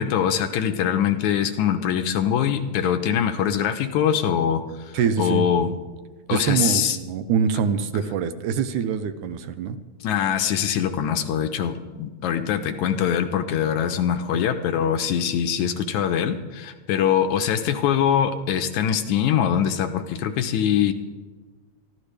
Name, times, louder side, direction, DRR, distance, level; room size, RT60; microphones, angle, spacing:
voice 1, 0.0-5.7 6.3-7.0 10.0-20.9, left 9 dB, 80° left, 7 dB, 2.2 m, -23 dB
voice 2, 4.9-5.5 6.3-9.8, right 7 dB, 80° right, 10 dB, 2.3 m, -24 dB
22.5 x 14.5 x 3.3 m, 1.3 s
omnidirectional pair, 3.5 m